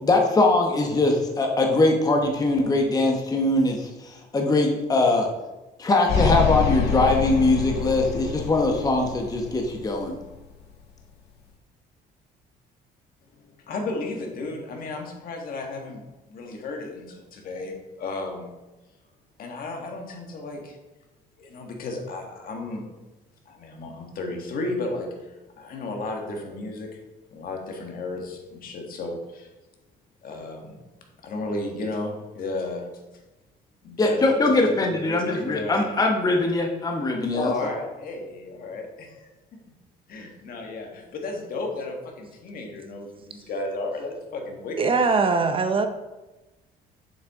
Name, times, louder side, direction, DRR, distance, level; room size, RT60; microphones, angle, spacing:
voice 1, 0.0-5.3 5.8-10.2 34.0-37.5, left 2 dB, 20° left, 2 dB, 1.0 m, -22 dB
sound 1, 6.1-10.4, left 6 dB, 75° left, 1.5 m, -26 dB
voice 2, 13.4-18.5 19.4-20.8 21.4-22.8 23.4-27.0 27.3-29.5 30.2-30.7 31.2-32.8 33.8-35.8 37.3-39.3 40.1-44.9, left 2 dB, 60° left, 2 dB, 1.7 m, -33 dB
voice 3, 44.8-45.9, right 4 dB, 30° right, 7 dB, 0.6 m, -21 dB
7.3 x 6.3 x 3.7 m, 1.1 s
cardioid pair, 110°, 17 cm